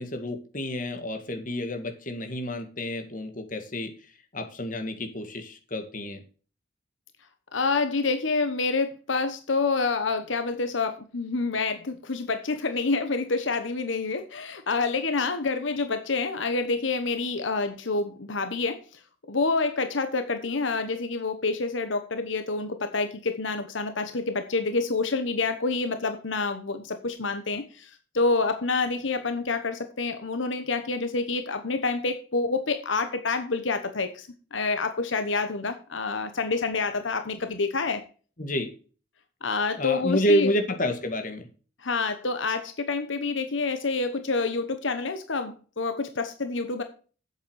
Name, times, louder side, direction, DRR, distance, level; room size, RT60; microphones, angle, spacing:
voice 1, 0.0-3.9 4.3-6.2 38.4-38.7 39.8-41.5, equal, 45° left, 6 dB, 1.9 m, -29 dB
voice 2, 7.5-18.8 19.3-38.0 39.4-40.5 41.8-46.8, left 3 dB, 85° left, 8 dB, 1.1 m, -28 dB
8.0 x 7.8 x 6.4 m, 0.38 s
head